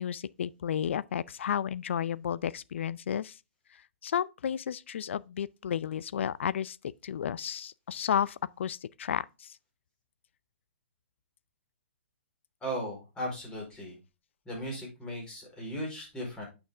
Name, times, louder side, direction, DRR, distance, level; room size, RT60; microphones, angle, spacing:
voice 1, 0.0-3.4 4.0-6.8 7.0-9.6, left 9 dB, 65° left, 0.5 m, -32 dB
voice 2, 12.6-13.9 14.4-16.4, equal, 10° left, 4.7 m, -37 dB
8.6 x 5.8 x 3.7 m
hypercardioid pair, 130°, 7 cm